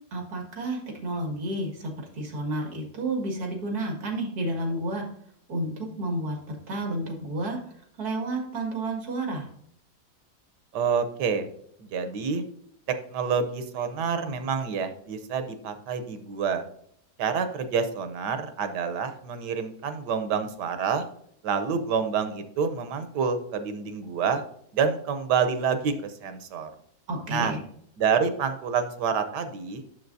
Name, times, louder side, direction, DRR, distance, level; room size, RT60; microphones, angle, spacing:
voice 1, 0.1-5.0 5.5-7.6 8.0-9.5 27.1-27.6, right 1 dB, 65° right, 1 dB, 2.4 m, -31 dB
voice 2, 10.7-11.5 11.9-12.4 13.1-16.6 17.2-21.0 21.4-24.4 24.7-26.7 27.3-27.5 28.0-29.8, right 6 dB, 90° right, 9 dB, 1.4 m, -27 dB
9.3 x 7.1 x 2.7 m, 0.69 s
omnidirectional pair, 1.8 m